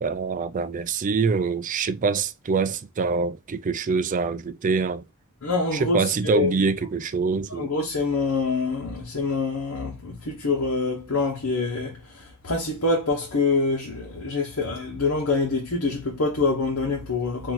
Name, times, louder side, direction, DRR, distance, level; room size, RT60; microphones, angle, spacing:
voice 1, 0.0-5.0 5.7-7.7, right 4 dB, 35° right, 0.4 m, -25 dB
voice 2, 5.4-6.6 7.5-17.5, left 3 dB, 70° left, 1.1 m, -26 dB
4.5 x 2.7 x 3.7 m
head